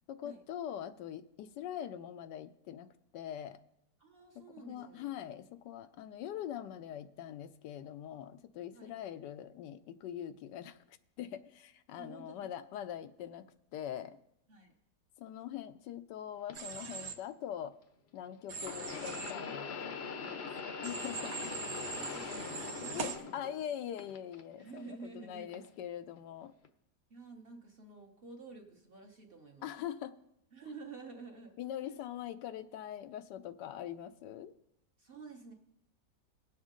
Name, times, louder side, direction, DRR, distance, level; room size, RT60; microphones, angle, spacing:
voice 1, 0.1-3.6 4.6-13.5 13.7-14.2 15.2-17.7 18.1-20.5 20.8-21.3 22.9-26.5 29.6-30.2 31.6-34.5, left 10 dB, 80° left, 10 dB, 1.2 m, -43 dB
voice 2, 4.0-5.1 8.7-9.0 11.9-12.5 12.7-12.8 14.5-14.7 20.0-21.3 21.9-23.4 24.6-25.7 27.1-29.7 30.5-31.5 31.8-31.9 35.0-35.5, right 4 dB, 40° right, 2 dB, 1.0 m, -51 dB
sound 1, 16.5-16.6 18.6-23.7 24.0-24.8 25.5-25.7 26.6-26.7, left 5 dB, 50° left, 0.8 m, -42 dB
Human voice / Train, 16.5-17.1 18.5-19.3 20.8-23.2, right 5 dB, 60° right, 1.2 m, -41 dB
18.5 x 7.2 x 3.7 m, 0.78 s
omnidirectional pair, 1.8 m